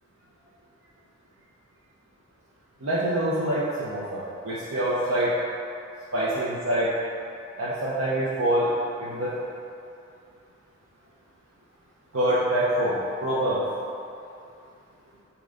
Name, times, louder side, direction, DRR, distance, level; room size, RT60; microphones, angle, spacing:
voice 1, 2.8-5.3 6.1-6.9 7.6-8.7 9.0-9.3 12.1-13.6, right 1 dB, 80° right, -9 dB, 0.9 m, -25 dB
8.4 x 3.0 x 3.9 m, 2.6 s
head